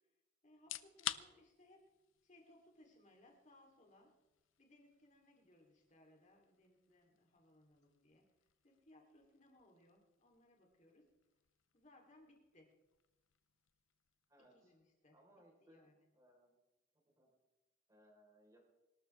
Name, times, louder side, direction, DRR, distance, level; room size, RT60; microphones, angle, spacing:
voice 1, 0.4-1.9 2.2-4.2 4.6-11.1 11.7-12.7 14.5-15.2 15.6-16.0, left 1 dB, 40° left, 0 dB, 3.5 m, -66 dB
sound 1, 0.5-15.4, left 12 dB, 85° left, 0.6 m, -54 dB
voice 2, 14.3-14.7 15.1-16.5 17.0-17.3 17.9-18.7, equal, 20° right, -1 dB, 4.4 m, -67 dB
24.5 x 13.0 x 3.5 m, 1.0 s
head